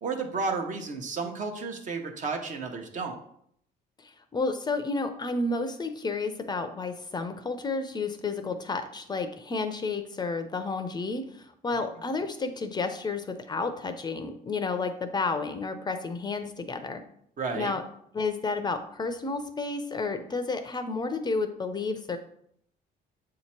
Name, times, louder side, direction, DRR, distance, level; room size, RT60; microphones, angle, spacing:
voice 1, 0.0-3.2 17.4-17.7, right 4 dB, 50° right, 4 dB, 1.0 m, -32 dB
voice 2, 4.0-17.0 17.5-17.8 18.1-22.2, left 3 dB, 25° left, 8 dB, 0.5 m, -31 dB
7.4 x 2.9 x 4.4 m, 0.69 s
cardioid pair, 110°, 17 cm